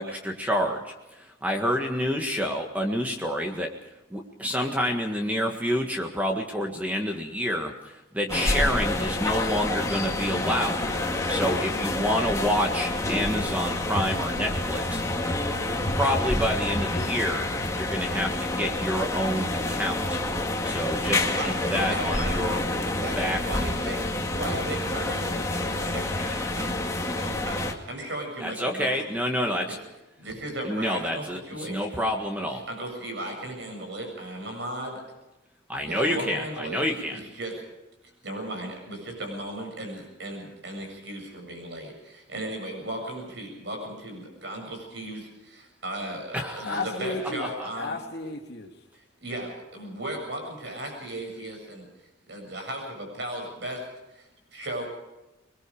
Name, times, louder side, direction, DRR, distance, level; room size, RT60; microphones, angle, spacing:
voice 1, 0.0-3.7 4.1-10.8 11.3-15.0 15.9-20.2 20.6-22.6 23.2-23.4 26.2-26.6 28.4-29.8 30.6-32.6 35.7-37.2 46.3-46.8, equal, 10° right, 2 dB, 1.7 m, -28 dB
sound 1, 8.3-27.7, left 2 dB, 15° left, 2.1 m, -28 dB
voice 2, 21.1-24.1 24.4-26.3 26.6-26.7 27.2-27.6 27.9-29.1 29.6-29.8 30.2-32.1 32.7-35.0 35.8-36.8 37.1-37.6 38.2-47.9 49.2-51.8 52.3-53.9 54.1-54.9, right 1 dB, 60° right, 3 dB, 7.5 m, -36 dB
voice 3, 46.6-47.4 47.8-48.9, left 2 dB, 55° left, 1 dB, 3.0 m, -33 dB
25.5 x 21.5 x 5.0 m, 1.0 s
head